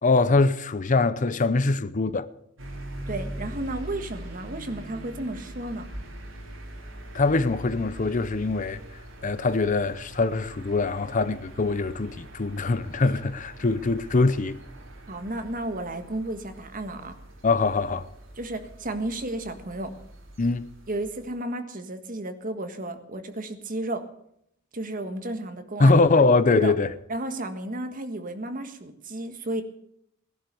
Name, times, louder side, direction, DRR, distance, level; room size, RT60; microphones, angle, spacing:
voice 1, 0.0-2.3 7.1-8.8 9.2-14.6 17.4-18.1 20.4-20.7 25.8-26.9, left 3 dB, 40° left, 0.6 m, -22 dB
sound 1, 2.6-21.4, right 1 dB, 70° right, 3.8 m, -42 dB
voice 2, 3.1-5.9 15.1-17.1 18.4-19.9 20.9-24.1 24.7-25.9 26.5-26.7 27.1-29.6, right 1 dB, 45° right, 1.6 m, -33 dB
18.0 x 11.5 x 6.8 m
head